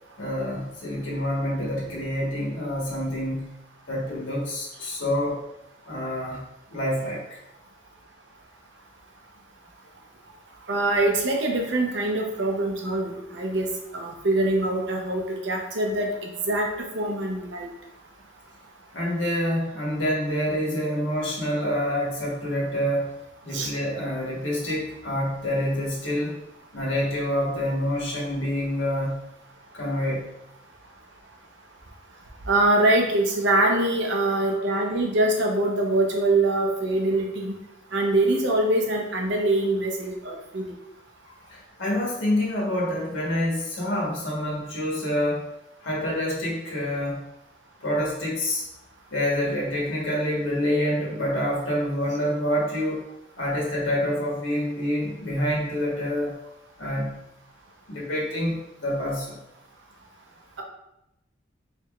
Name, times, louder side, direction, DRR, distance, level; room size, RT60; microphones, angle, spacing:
voice 1, 0.2-3.5 3.9-5.4 5.9-6.4 6.7-7.4 18.9-23.1 23.4-26.4 26.7-29.2 29.7-30.3 34.5-34.6 41.2-45.5 45.8-47.2 47.8-48.6 49.1-53.0 53.4-56.4 56.8-57.2 57.9-59.4, equal, 75° left, -4 dB, 1.3 m, -27 dB
voice 2, 10.7-13.7 13.9-16.7 16.9-17.7 23.5-23.7 32.5-37.6 37.9-40.6, right 2 dB, 65° right, 1 dB, 0.7 m, -24 dB
4.5 x 3.5 x 2.4 m, 0.87 s
head